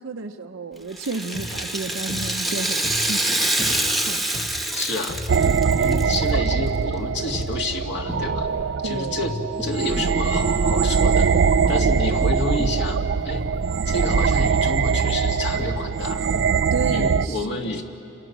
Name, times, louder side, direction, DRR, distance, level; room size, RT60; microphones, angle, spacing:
voice 1, 0.0-4.2 8.8-9.2 11.7-12.5 16.7-17.8, right 3 dB, 85° right, 2 dB, 0.8 m, -32 dB
Rattle (instrument), 0.9-6.2 6.5-6.6 7.4-7.5, right 1 dB, ahead, 1.1 m, -26 dB
sound 1, 1.2-8.9 9.2-16.9, left 2 dB, 20° left, 1.0 m, -36 dB
voice 2, 4.7-5.2 5.7-8.5 8.8-11.3 11.7-13.4 13.9-16.2 16.9-17.8, left 2 dB, 60° left, 2 dB, 2.3 m, -29 dB
sound 2, 5.3-17.3, right 5 dB, 60° right, 0.5 m, -22 dB
29.5 x 27.0 x 6.1 m, 3.0 s
head